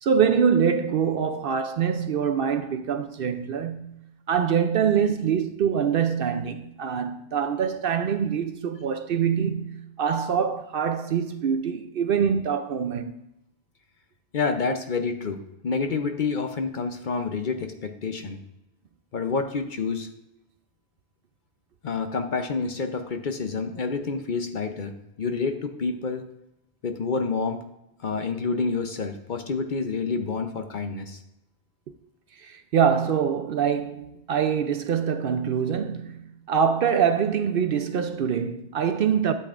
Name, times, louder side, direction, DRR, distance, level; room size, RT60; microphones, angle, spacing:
voice 1, 0.0-4.0 4.3-13.2 32.4-39.3, right 7 dB, 60° right, 0.7 m, -24 dB
voice 2, 14.3-15.4 15.6-18.4 19.1-20.1 21.8-26.2 26.8-27.6 28.0-31.2, left 4 dB, 50° left, 0.8 m, -28 dB
12.0 x 7.8 x 2.5 m
omnidirectional pair, 1.2 m